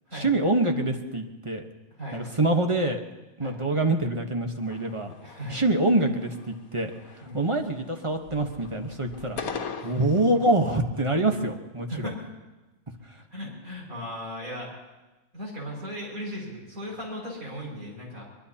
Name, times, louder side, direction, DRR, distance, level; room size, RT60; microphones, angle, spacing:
voice 1, 0.1-1.6 2.1-3.0 3.4-5.1 5.5-9.4 9.8-12.1, right 2 dB, 25° right, 3 dB, 1.1 m, -25 dB
sound 1, 4.6-5.8 6.2-6.7 6.9-7.9 8.2-10.7, left 5 dB, 90° left, 1.5 m, -40 dB
voice 2, 5.2-5.6 7.2-7.5 9.8-10.2 11.9-12.2 13.3-14.7 15.3-18.2, equal, 80° right, -3 dB, 6.4 m, -37 dB
23.0 x 22.0 x 2.9 m, 1.1 s
omnidirectional pair, 1.5 m